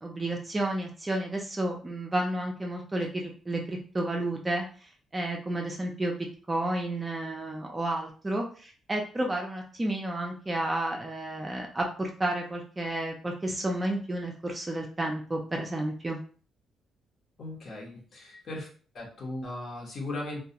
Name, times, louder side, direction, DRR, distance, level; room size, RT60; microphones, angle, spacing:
voice 1, 0.0-4.6 5.1-16.2, right 1 dB, 20° right, 0 dB, 0.5 m, -31 dB
voice 2, 17.4-18.7 18.9-20.4, left 2 dB, 50° left, -2 dB, 1.0 m, -37 dB
2.3 x 2.2 x 2.8 m, 0.41 s
cardioid pair, 115°, 0 cm